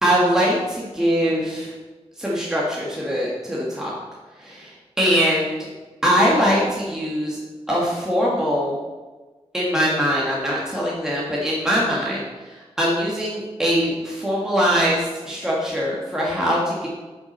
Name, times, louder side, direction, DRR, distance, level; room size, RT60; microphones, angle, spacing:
voice 1, 0.0-1.7 2.2-3.9 4.4-4.7 5.0-5.7 6.0-7.4 7.7-8.8 9.5-12.2 12.8-16.9, equal, 5° right, -5 dB, 1.8 m, -22 dB
9.7 x 7.3 x 6.6 m, 1.3 s
wide cardioid pair, 160°, 11 cm